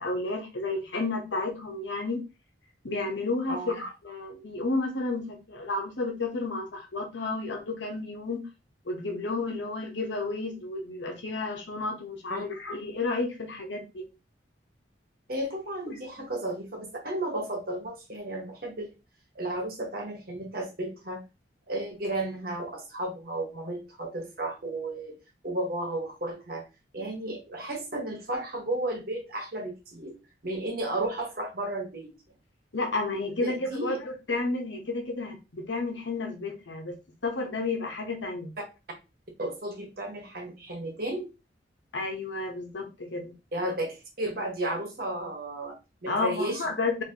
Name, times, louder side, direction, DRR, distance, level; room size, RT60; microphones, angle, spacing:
voice 1, 0.0-2.2 2.8-8.4 8.9-14.1 15.9-16.0 32.7-36.9 37.2-38.5 41.9-43.3 46.1-47.0, left 3 dB, 80° left, 3 dB, 1.0 m, -31 dB
voice 2, 15.3-18.9 19.3-21.2 21.7-25.2 25.4-26.6 26.9-30.1 30.4-32.1 33.4-34.0 39.4-41.3 43.5-46.6, right 1 dB, 50° right, 2 dB, 1.2 m, -33 dB
4.0 x 2.8 x 2.9 m, 0.27 s
head